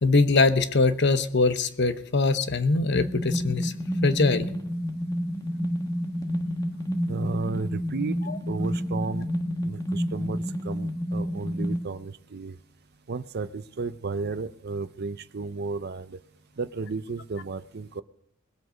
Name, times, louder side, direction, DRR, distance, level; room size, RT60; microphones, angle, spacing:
voice 1, 0.0-3.7 4.0-4.5 8.3-8.4, left 3 dB, 60° left, 11 dB, 0.9 m, -22 dB
sound 1, 2.9-11.8, equal, 20° left, 1.3 m, -29 dB
voice 2, 7.1-9.3 9.6-12.6 13.1-16.2 16.6-18.0, right 4 dB, 55° right, 13 dB, 0.6 m, -33 dB
21.0 x 7.9 x 5.1 m, 0.72 s
head